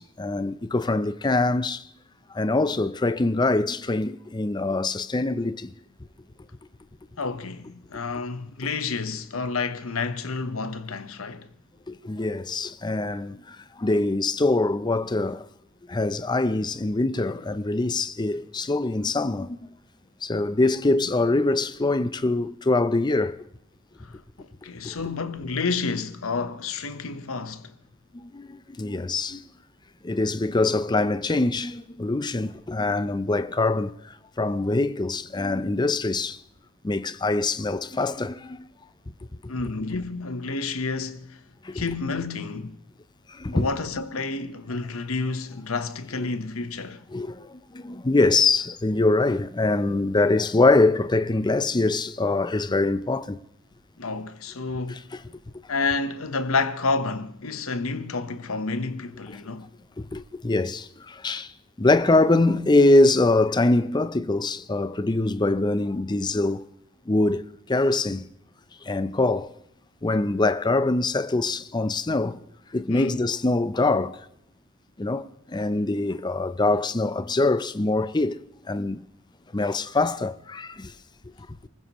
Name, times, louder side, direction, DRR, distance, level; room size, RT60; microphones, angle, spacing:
voice 1, 0.0-1.8 2.3-5.7 11.9-15.5 15.9-19.7 20.2-23.4 24.8-25.0 28.1-29.4 30.0-36.4 36.8-38.7 41.6-41.8 43.3-43.7 47.1-53.4 54.9-55.2 59.3-59.4 60.0-61.5 61.8-66.6 67.1-68.3 68.8-69.5 70.0-72.4 72.7-74.3 75.0-79.1 79.5-80.9, left 2 dB, 20° left, 0.5 m, -24 dB
voice 2, 7.2-11.5 24.0-27.7 39.5-41.4 41.7-42.7 43.5-47.0 54.0-55.1 55.7-59.7 72.9-73.2, left 4 dB, 80° left, 1.0 m, -30 dB
28.5 x 15.0 x 3.0 m
head